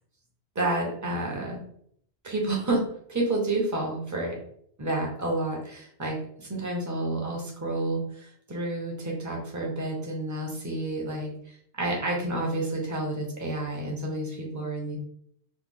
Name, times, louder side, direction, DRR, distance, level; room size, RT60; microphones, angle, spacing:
voice 1, 0.5-1.6 2.2-2.8 3.1-4.3 4.8-15.0, right 2 dB, 20° right, -1 dB, 0.6 m, -30 dB
3.1 x 2.2 x 3.6 m, 0.66 s
omnidirectional pair, 1.2 m